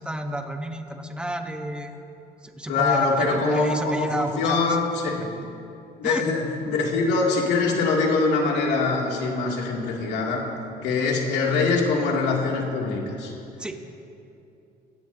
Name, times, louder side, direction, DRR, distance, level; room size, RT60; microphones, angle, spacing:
voice 1, 0.0-2.1 2.4-4.6 6.0-6.2 13.6-13.8, right 1 dB, 5° right, 5 dB, 1.2 m, -31 dB
voice 2, 2.7-5.3 6.0-10.5 10.8-13.3, left 4 dB, 80° left, -2 dB, 2.9 m, -23 dB
22.5 x 16.5 x 2.9 m, 2.7 s
cardioid pair, 110°, 17 cm